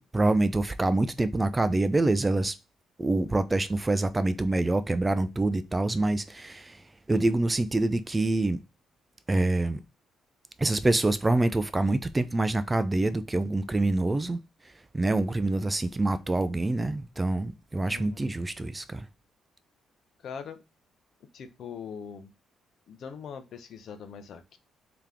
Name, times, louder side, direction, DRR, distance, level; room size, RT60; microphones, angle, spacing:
voice 1, 0.1-2.6 3.0-8.6 9.3-9.8 10.6-14.4 14.9-19.1, right 2 dB, 20° right, 0.4 m, -26 dB
voice 2, 20.2-20.6 21.3-22.3 22.9-24.6, left 6 dB, 65° left, 0.7 m, -41 dB
3.6 x 2.9 x 3.4 m
cardioid pair, 90°, 0 cm